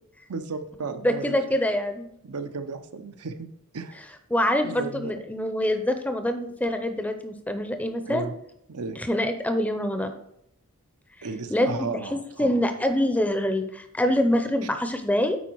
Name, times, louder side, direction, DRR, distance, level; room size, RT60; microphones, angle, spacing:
voice 1, 0.3-1.4 2.2-3.5 3.7-4.0 4.6-5.1 8.0-8.3 8.7-9.0 11.2-12.6, right 4 dB, 80° right, 8 dB, 0.7 m, -34 dB
voice 2, 1.0-2.1 4.3-8.2 9.0-10.1 11.5-11.7 12.1-15.4, left 1 dB, 5° left, 8 dB, 0.5 m, -25 dB
8.3 x 4.6 x 4.6 m, 0.74 s
head